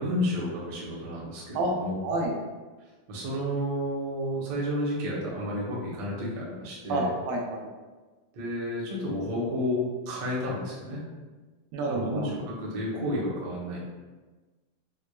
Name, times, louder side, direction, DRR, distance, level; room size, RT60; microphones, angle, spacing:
voice 1, 0.0-1.9 3.1-7.1 8.3-11.0 11.9-13.8, left 1 dB, 70° right, -5 dB, 1.7 m, -31 dB
voice 2, 2.0-2.3 6.9-7.7 11.7-12.3, right 2 dB, 85° right, 0 dB, 2.3 m, -28 dB
6.3 x 2.1 x 2.2 m, 1.3 s
omnidirectional pair, 3.9 m